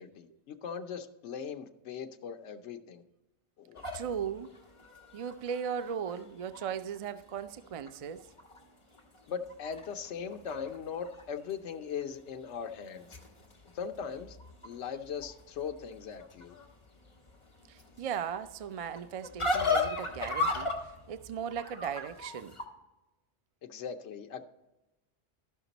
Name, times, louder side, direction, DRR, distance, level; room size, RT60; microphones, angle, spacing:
voice 1, 0.0-3.0 3.6-3.8 9.3-13.1 13.7-14.4 14.6-16.5 23.6-24.5, left 7 dB, 75° left, 1.0 m, -39 dB
sound 1, 3.8-7.0 7.5-7.6 7.8-8.6 8.9-11.2 11.5-12.0 12.7-22.6, left 3 dB, 25° left, 1.3 m, -37 dB
voice 2, 3.9-4.5 5.1-8.3 17.7-22.6, right 7 dB, 70° right, 0.3 m, -37 dB
13.0 x 5.9 x 4.0 m
omnidirectional pair, 1.2 m